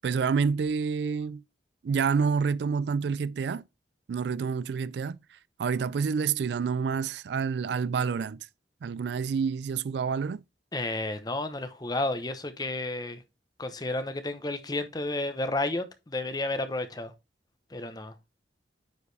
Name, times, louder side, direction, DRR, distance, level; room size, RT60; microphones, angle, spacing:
voice 1, 0.0-1.4 1.8-3.6 4.1-5.2 5.6-8.5 8.8-10.4, right 5 dB, 70° right, 0.3 m, -28 dB
voice 2, 10.7-13.2 13.6-17.1 17.7-18.1, left 2 dB, 20° left, 0.8 m, -31 dB
9.4 x 4.8 x 3.3 m
head